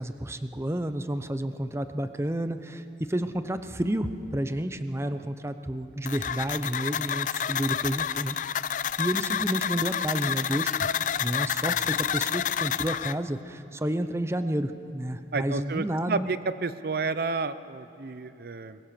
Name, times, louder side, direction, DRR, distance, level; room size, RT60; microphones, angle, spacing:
voice 1, 0.0-10.9 11.2-16.3, right 1 dB, 15° right, 10 dB, 0.7 m, -30 dB
sound 1, 6.1-13.1, left 8 dB, 45° left, 0.4 m, -29 dB
voice 2, 15.3-18.8, right 4 dB, 55° right, 13 dB, 0.6 m, -30 dB
22.0 x 22.0 x 6.8 m, 2.7 s
head